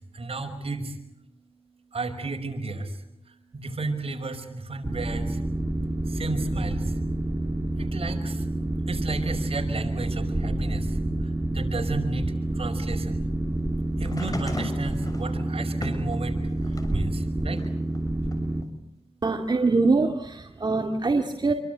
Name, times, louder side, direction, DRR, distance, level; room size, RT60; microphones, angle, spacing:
voice 1, 0.2-0.9 1.9-2.8 3.5-5.4 6.1-6.8 7.8-8.3 8.9-10.8 11.5-12.3 12.6-13.2 14.0-16.4 16.9-17.6, right 3 dB, 65° right, 5 dB, 5.6 m, -33 dB
Boat Water vehicle, 4.8-18.6, right 1 dB, 20° right, 3.5 m, -28 dB
sound 1, 14.0-17.0 17.5-18.7 19.7-19.8, left 1 dB, 35° left, 6.8 m, -38 dB
voice 2, 19.2-21.5, right 3 dB, 45° right, 3 dB, 2.4 m, -23 dB
27.5 x 24.5 x 8.2 m, 0.80 s
wide cardioid pair, 70°, 10 cm